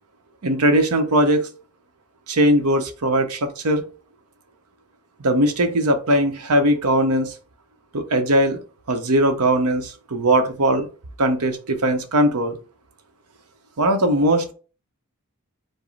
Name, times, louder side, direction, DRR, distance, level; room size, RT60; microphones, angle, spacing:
voice 1, 0.4-1.5 2.3-3.8 5.2-7.3 7.9-8.6 8.9-10.9 11.2-12.6 13.8-14.4, right 1 dB, 85° right, 0.8 m, -19 dB
4.9 x 2.1 x 4.0 m
head